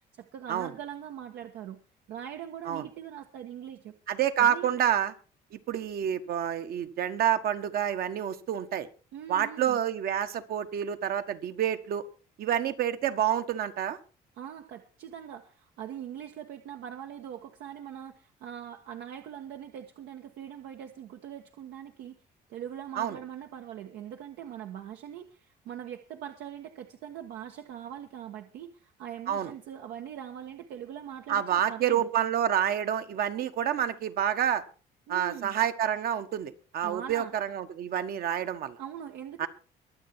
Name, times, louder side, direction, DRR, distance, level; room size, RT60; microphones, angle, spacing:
voice 1, 0.2-1.8 2.1-3.9 4.4-4.7 9.1-9.8 14.4-22.1 22.5-32.1 35.1-35.5 36.8-37.3 38.8-39.5, right 9 dB, 80° right, 4 dB, 1.4 m, -42 dB
voice 2, 4.1-5.1 5.5-8.9 9.3-12.0 12.4-14.0 22.9-23.2 29.3-29.5 31.3-34.6 35.1-38.8 39.4-39.5, right 10 dB, 65° right, 9 dB, 1.5 m, -28 dB
22.5 x 8.0 x 4.6 m, 0.36 s
cardioid pair, 110°, 17 cm